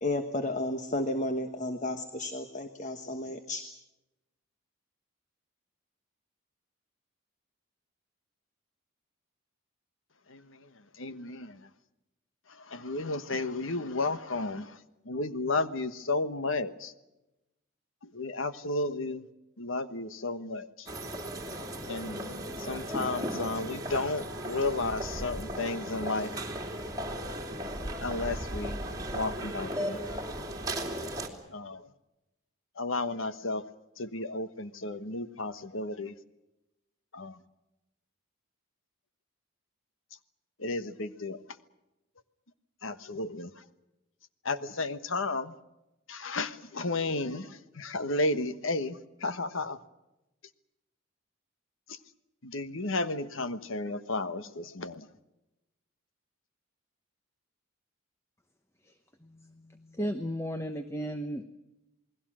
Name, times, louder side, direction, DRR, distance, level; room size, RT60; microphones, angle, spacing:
voice 1, 0.0-3.6, left 1 dB, 35° left, 7 dB, 1.4 m, -32 dB
voice 2, 11.0-11.6 12.7-14.8 15.1-16.9 18.1-19.2 19.6-20.9 21.9-26.3 28.0-28.8 29.1-30.0 31.5-31.8 32.8-33.6 34.0-36.1 37.1-37.4 40.6-41.4 42.8-43.5 44.4-45.5 46.1-49.8 51.9-52.0 52.4-55.1, left 2 dB, 70° left, 12 dB, 1.3 m, -33 dB
sound 1, 20.9-31.3, equal, 15° right, 2.8 m, -36 dB
voice 3, 59.2-61.5, equal, 15° left, 8 dB, 0.9 m, -35 dB
28.5 x 20.5 x 6.3 m, 0.95 s
head